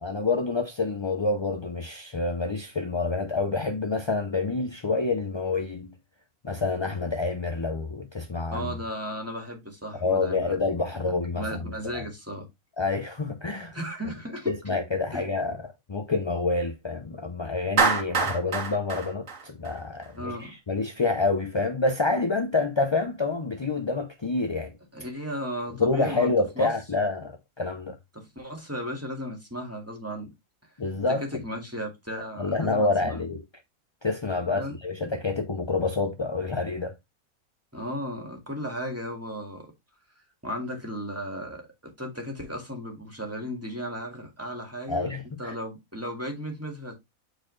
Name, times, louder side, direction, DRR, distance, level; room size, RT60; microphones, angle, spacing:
voice 1, 0.0-5.9 6.4-8.7 10.0-12.0 12.8-13.8 14.5-24.7 25.8-28.0 30.8-31.2 32.4-33.4 34.0-36.9 44.9-45.5, left 3 dB, 40° left, 0.4 m, -28 dB
voice 2, 8.5-10.6 11.0-12.5 13.7-14.5 15.1-15.2 20.2-20.6 24.9-26.7 28.1-30.3 31.1-33.2 34.5-34.8 37.7-39.7 40.4-45.1 45.4-46.9, equal, 10° right, 1.8 m, -35 dB
Clapping, 17.8-20.1, right 5 dB, 60° right, 1.9 m, -25 dB
8.0 x 4.3 x 3.2 m
omnidirectional pair, 1.5 m